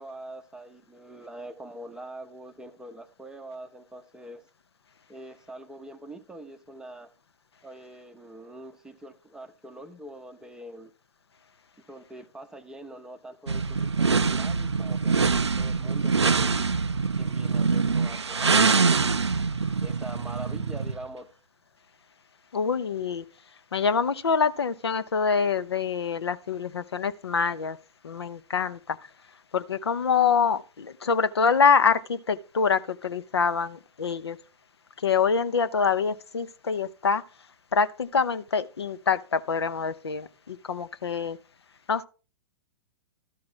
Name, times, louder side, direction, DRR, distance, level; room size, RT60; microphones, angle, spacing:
voice 1, 0.0-4.4 5.1-7.1 7.6-10.9 11.9-16.5 17.2-18.8 19.8-21.3, right 1 dB, 5° right, 0.6 m, -43 dB
sound 1, 13.5-21.0, right 4 dB, 85° right, 0.4 m, -24 dB
voice 2, 22.5-23.2 23.7-27.8 28.0-29.0 29.5-34.4 35.0-37.2 37.7-41.4 41.9-42.0, left 6 dB, 70° left, 0.6 m, -25 dB
13.0 x 4.7 x 3.7 m
figure-of-eight pair, 105°, 14 cm